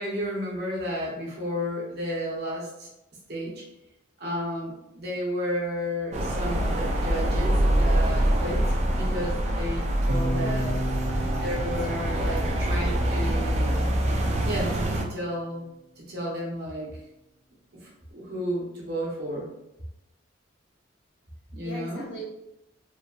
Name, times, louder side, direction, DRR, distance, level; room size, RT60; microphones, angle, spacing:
voice 1, 0.0-2.9 3.3-3.6 4.2-8.6 8.9-10.7 11.4-13.8 14.4-17.0 17.7-19.5 21.5-22.0, equal, 55° right, -4 dB, 0.8 m, -32 dB
sound 1, 6.1-15.0, right 1 dB, 35° right, 0.3 m, -25 dB
sound 2, 10.1-14.2, equal, 90° right, 0.5 m, -34 dB
voice 2, 10.3-10.9 11.6-12.1 21.6-22.3, right 1 dB, 70° left, -5 dB, 1.1 m, -40 dB
2.9 x 2.2 x 2.3 m, 0.90 s
head